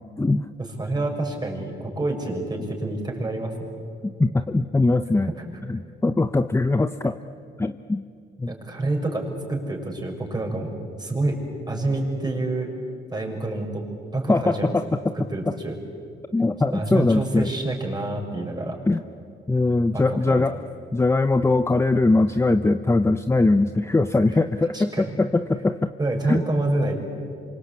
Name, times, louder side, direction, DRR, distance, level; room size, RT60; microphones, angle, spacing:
voice 1, 0.6-3.5 5.3-5.4 8.5-10.7 11.0-12.7 13.1-13.8 14.1-14.7 15.1-15.8 16.7-18.8 19.9-20.4 24.7-25.1 26.0-27.0, right 2 dB, 20° right, 1 dB, 6.5 m, -27 dB
voice 2, 4.2-5.3 5.7-7.2 7.6-8.0 8.4-8.5 14.3-15.1 16.3-17.5 18.9-19.0 19.5-20.6 20.9-24.9 25.2-25.9 26.2-26.4, left 2 dB, 15° left, 9 dB, 0.8 m, -21 dB
27.5 x 25.0 x 8.6 m, 2.3 s
cardioid pair, 90°, 20 cm